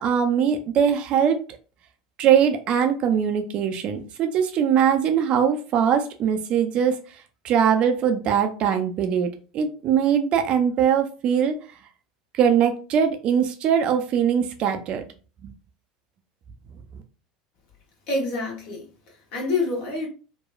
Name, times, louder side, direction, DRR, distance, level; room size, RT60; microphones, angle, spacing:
voice 1, 0.0-1.4 2.2-7.0 7.4-11.6 12.4-15.0 15.4-15.5, right 8 dB, 45° right, 0.4 m, -21 dB
voice 2, 18.1-20.1, left 3 dB, 50° left, 1.3 m, -27 dB
3.0 x 2.2 x 2.3 m
figure-of-eight pair, 75°, 3 cm